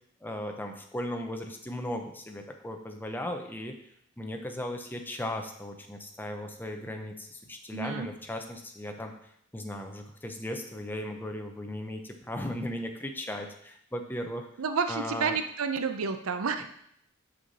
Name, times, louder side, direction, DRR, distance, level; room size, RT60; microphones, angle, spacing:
voice 1, 0.2-3.8 4.2-9.1 9.5-14.5 14.9-15.4, left 1 dB, 10° left, 4 dB, 0.6 m, -37 dB
voice 2, 7.7-8.1 14.6-16.6, right 5 dB, 80° right, 8 dB, 0.5 m, -30 dB
6.3 x 5.6 x 4.1 m, 0.71 s
head